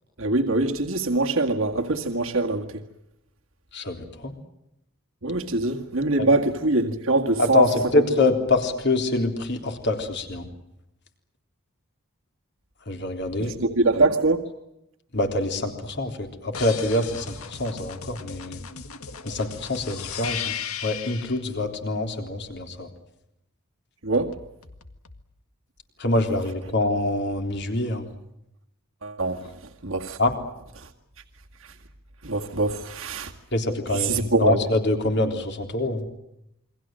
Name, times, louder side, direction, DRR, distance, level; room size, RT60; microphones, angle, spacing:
voice 1, 0.2-2.8 5.2-7.7 13.4-14.4 24.0-24.3 29.0-29.4 29.8-30.2 30.8-30.9 32.2-33.3 33.9-34.6, right 2 dB, 65° right, 2.0 m, -23 dB
voice 2, 3.7-4.3 6.2-6.3 7.4-10.5 12.9-13.5 15.1-18.6 19.2-20.5 20.8-22.9 26.0-28.1 30.2-30.3 33.5-36.1, left 2 dB, 50° left, 3.7 m, -25 dB
sound 1, 16.5-21.4 24.1-25.2, left 8 dB, 80° left, 1.9 m, -36 dB
28.5 x 23.5 x 7.7 m
head